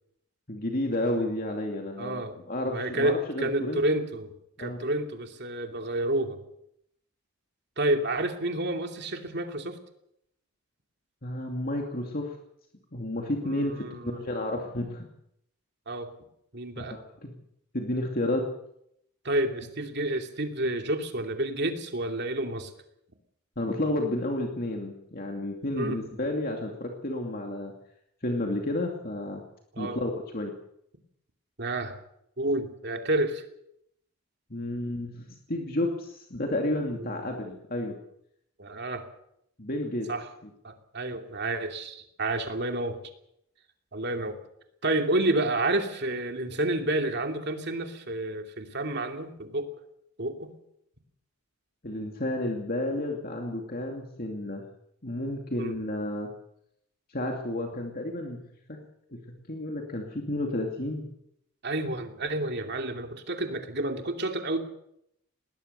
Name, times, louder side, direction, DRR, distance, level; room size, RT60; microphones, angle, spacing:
voice 1, 0.5-3.8 4.6-4.8 11.2-12.4 12.9-15.1 16.8-17.3 17.7-18.5 23.6-27.7 28.2-29.4 29.8-30.5 34.5-37.9 39.6-40.1 51.8-54.6 55.0-56.3 57.1-58.4 58.7-58.8 59.1-59.2 59.5-61.0, left 1 dB, 40° left, 2 dB, 2.5 m, -31 dB
voice 2, 2.0-2.3 2.7-4.3 4.6-6.4 7.8-9.8 13.4-14.3 15.9-16.1 16.5-17.0 19.2-22.7 25.8-26.0 29.7-30.0 31.6-32.0 32.4-33.4 36.9-37.3 38.6-39.0 40.1-40.3 40.6-43.0 43.9-44.4 44.8-49.7 50.2-50.5 55.6-55.8 61.6-64.6, right 1 dB, 50° right, 4 dB, 2.8 m, -30 dB
21.0 x 19.0 x 6.8 m, 0.76 s
head